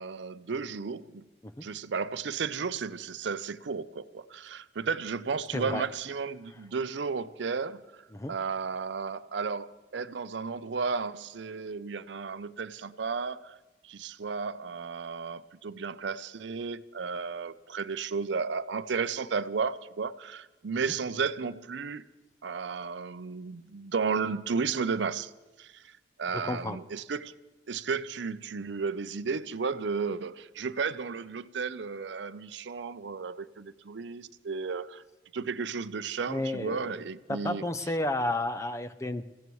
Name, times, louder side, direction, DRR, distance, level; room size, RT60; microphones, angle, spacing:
voice 1, 0.0-1.2 1.6-13.6 13.8-22.0 22.4-25.3 25.6-27.3 27.7-35.0 35.3-37.6, right 5 dB, 70° right, 0.5 m, -33 dB
voice 2, 5.5-5.8 8.1-8.3 26.3-26.8 36.3-36.9 37.3-39.2, left 1 dB, 15° left, 0.5 m, -32 dB
28.0 x 15.5 x 3.1 m
head